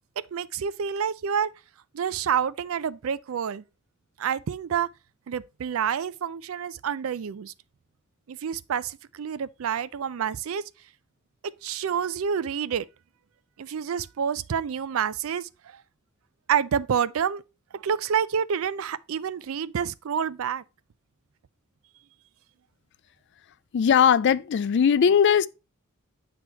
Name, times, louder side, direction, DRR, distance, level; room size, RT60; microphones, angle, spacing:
voice 1, 0.3-1.5 1.9-3.6 4.2-4.9 5.3-7.5 8.3-10.6 11.6-12.9 13.6-15.8 16.5-17.4 17.7-20.6, right 7 dB, 75° right, 0.4 m, -28 dB
voice 2, 23.7-25.5, left 7 dB, 55° left, 0.3 m, -19 dB
8.0 x 3.0 x 4.4 m
head